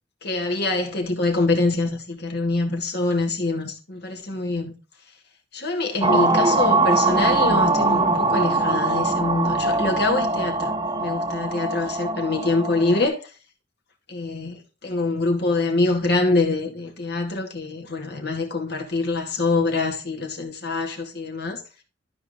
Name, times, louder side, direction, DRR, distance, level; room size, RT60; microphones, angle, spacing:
voice 1, 0.2-4.7 5.5-13.2 14.1-21.6, left 3 dB, 60° left, 2.3 m, -25 dB
sound 1, 6.0-13.1, right 3 dB, 20° right, 0.9 m, -22 dB
13.0 x 4.7 x 3.8 m
head